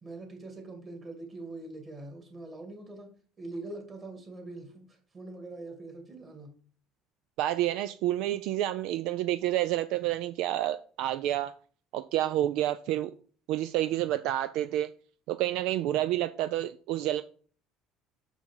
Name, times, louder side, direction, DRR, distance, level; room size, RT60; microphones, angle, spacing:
voice 1, 0.0-3.1 3.4-6.5 12.9-13.0, right 2 dB, 25° right, 2.5 m, -43 dB
voice 2, 7.4-11.5 11.9-13.1 13.5-14.9 15.3-17.2, right 13 dB, 60° right, 0.4 m, -29 dB
6.6 x 6.1 x 5.5 m
cardioid pair, 165°, 0 cm